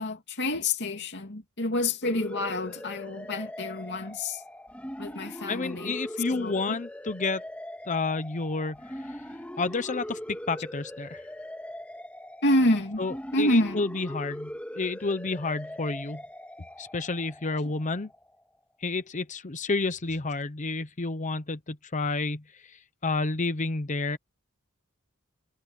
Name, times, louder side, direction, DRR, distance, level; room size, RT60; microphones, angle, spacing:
voice 1, 0.0-4.4 5.0-5.9 6.3-6.7 12.4-13.0 13.3-13.8, left 1 dB, 55° left, 2.8 m, -28 dB
sound 1, 2.0-18.4, equal, 5° left, 2.0 m, -41 dB
voice 2, 5.5-7.4 7.8-9.3 9.6-11.2 13.0-16.2 16.8-18.1 18.8-24.2, left 3 dB, 35° left, 0.9 m, -30 dB
head